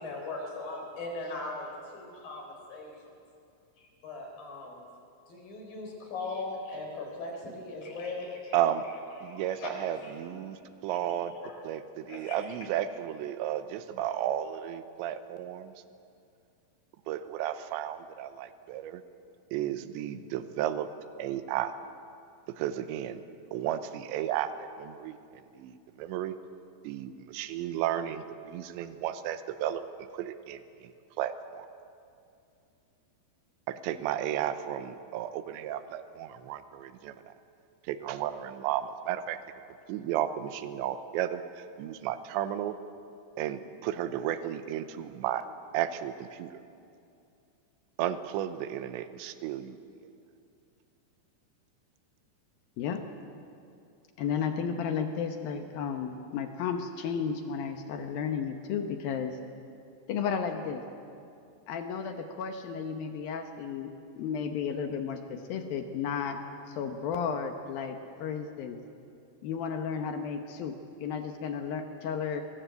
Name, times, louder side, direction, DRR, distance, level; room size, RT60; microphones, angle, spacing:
voice 1, 0.0-2.9 3.8-4.8 5.3-8.6 8.9-10.2 11.1-11.5 12.1-12.4, left 3 dB, 50° left, 0 dB, 5.6 m, -39 dB
voice 2, 8.5-8.8 9.2-11.3 11.6-15.7 17.1-19.0 19.5-20.9 21.2-21.7 22.5-23.2 23.5-25.2 25.6-26.4 26.8-29.8 30.1-30.9 31.2-31.7 33.7-37.2 37.9-39.4 39.9-42.8 43.4-45.4 45.7-46.6 48.0-49.8, right 11 dB, 85° right, 11 dB, 3.1 m, -33 dB
voice 3, 54.2-59.4 60.1-60.8 61.7-66.4 66.7-68.8 69.4-72.4, left 6 dB, 70° left, 6 dB, 2.4 m, -33 dB
23.0 x 20.0 x 8.1 m, 2.5 s
omnidirectional pair, 5.2 m